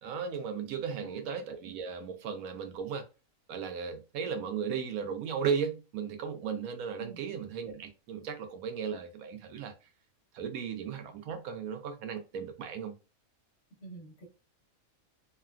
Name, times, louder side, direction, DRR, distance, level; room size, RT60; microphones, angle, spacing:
voice 1, 0.0-3.0 3.5-9.7 10.3-12.9, right 6 dB, 90° right, 1.0 m, -36 dB
voice 2, 0.9-1.2 7.0-7.3 13.8-14.3, right 4 dB, 55° left, 1.1 m, -48 dB
3.2 x 2.2 x 2.2 m
omnidirectional pair, 1.4 m